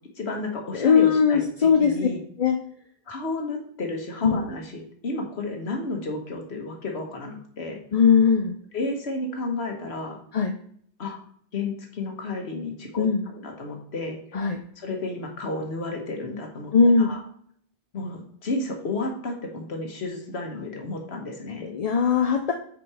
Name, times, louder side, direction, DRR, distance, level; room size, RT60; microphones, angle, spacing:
voice 1, 0.2-2.2 3.1-7.8 8.7-10.2 11.0-11.2 11.5-14.2 14.8-17.2 17.9-21.7, left 2 dB, 85° left, 2 dB, 1.6 m, -32 dB
voice 2, 0.7-1.9 2.4-2.6 4.2-4.4 7.9-8.6 10.3-10.5 13.0-13.3 14.3-14.6 16.7-17.1 21.6-22.5, left 6 dB, 45° left, 4 dB, 0.6 m, -19 dB
6.0 x 5.2 x 4.8 m, 0.63 s
omnidirectional pair, 1.1 m